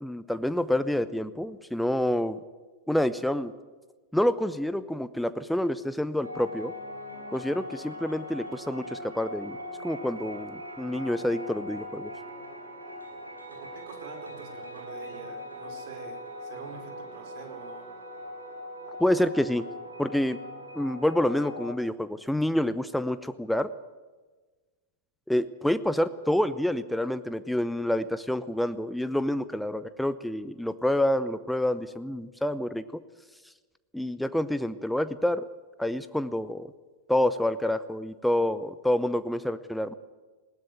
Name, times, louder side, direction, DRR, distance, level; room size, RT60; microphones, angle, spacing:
voice 1, 0.0-2.4 2.9-3.5 4.1-6.7 7.3-9.6 9.8-12.1 19.0-19.6 20.0-20.4 20.7-23.7 25.3-33.0 33.9-35.5 35.8-36.7 37.1-39.9, left 1 dB, ahead, 13 dB, 0.8 m, -28 dB
sound 1, 6.2-21.8, left 1 dB, 80° right, 4.0 m, -41 dB
voice 2, 13.5-17.9, right 6 dB, 50° right, 5 dB, 4.6 m, -45 dB
20.0 x 18.0 x 9.2 m, 1.3 s
figure-of-eight pair, 90°, 0 cm